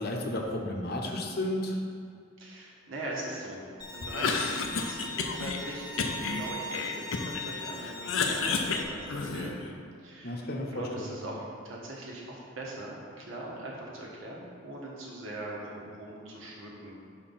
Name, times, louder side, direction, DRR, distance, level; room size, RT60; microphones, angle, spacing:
voice 1, 0.0-1.8 10.2-10.7 11.0-11.1, left 1 dB, 55° left, 1 dB, 0.8 m, -32 dB
voice 2, 2.4-3.6 3.9-17.0, right 1 dB, 85° right, -3 dB, 1.4 m, -41 dB
Bowed string instrument, 3.8-8.8, left 2 dB, 20° left, 0.7 m, -40 dB
Cough, 4.0-5.6 6.0-7.5 7.8-9.7, left 4 dB, 85° left, 0.6 m, -31 dB
5.9 x 4.4 x 5.7 m, 2.3 s
head